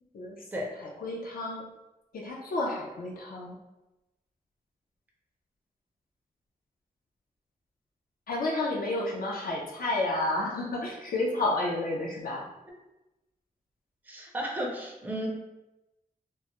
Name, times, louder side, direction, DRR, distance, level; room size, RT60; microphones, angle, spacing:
voice 1, 1.0-1.6 2.1-3.5 8.3-12.4, left 2 dB, 70° left, -2 dB, 0.4 m, -30 dB
voice 2, 14.1-15.3, equal, 10° right, -1 dB, 0.4 m, -33 dB
2.2 x 2.0 x 2.8 m, 0.97 s
wide cardioid pair, 135°, 15 cm